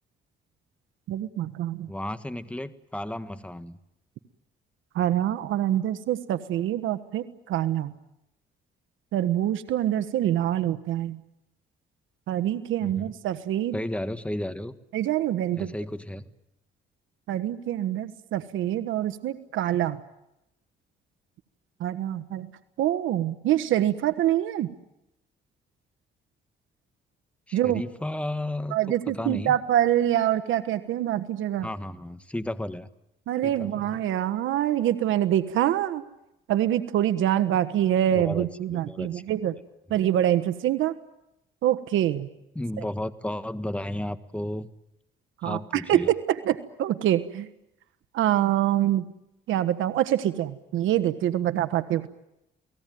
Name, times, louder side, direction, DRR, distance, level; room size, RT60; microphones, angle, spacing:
voice 1, 1.1-1.9 4.9-7.9 9.1-11.2 12.3-13.7 14.9-15.7 17.3-20.0 21.8-22.5 22.8-24.7 27.5-27.8 28.7-31.7 33.3-36.0 36.5-39.5 39.9-40.9 41.6-42.3 45.4-47.5 48.1-49.1 49.5-52.1, right 12 dB, 85° right, 11 dB, 1.3 m, -25 dB
voice 2, 1.9-3.8 12.8-13.1 13.7-14.7 15.6-16.3 27.5-28.8 29.1-29.6 31.6-32.9 33.4-34.0 38.1-39.2 42.6-44.7 45.4-46.1, left 1 dB, 5° left, 10 dB, 1.6 m, -33 dB
29.5 x 19.5 x 9.4 m, 0.87 s
cardioid pair, 90°, 20 cm